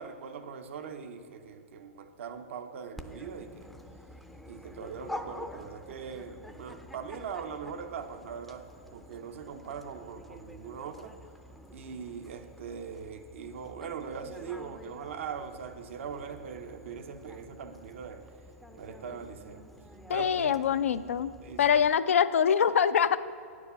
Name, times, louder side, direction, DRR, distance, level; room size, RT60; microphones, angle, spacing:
voice 1, 0.0-3.7 4.5-11.2 11.7-18.2 18.7-19.6 20.1-20.5 21.4-21.6, right 6 dB, 65° right, 7 dB, 0.7 m, -41 dB
Dog, 3.0-21.9, left 1 dB, ahead, 0.5 m, -48 dB
voice 2, 20.1-21.3 21.6-23.2, left 8 dB, 75° left, 13 dB, 0.4 m, -24 dB
9.3 x 4.9 x 6.8 m, 2.5 s
hypercardioid pair, 120°, 7 cm